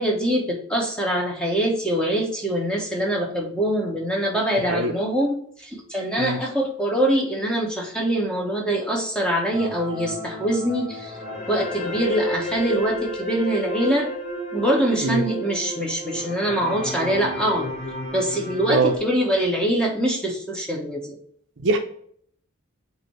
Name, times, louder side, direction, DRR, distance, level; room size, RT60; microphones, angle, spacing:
voice 1, 0.0-11.2 11.5-14.1 14.5-17.7 18.1-21.2, right 1 dB, 5° left, -1 dB, 1.1 m, -24 dB
voice 2, 4.6-5.0 6.2-6.4 15.0-15.2 18.7-18.9 21.6-21.8, right 3 dB, 55° right, 6 dB, 0.7 m, -22 dB
sound 1, 9.5-19.0, left 1 dB, 35° left, 1.4 m, -32 dB
7.8 x 2.8 x 4.4 m, 0.62 s
head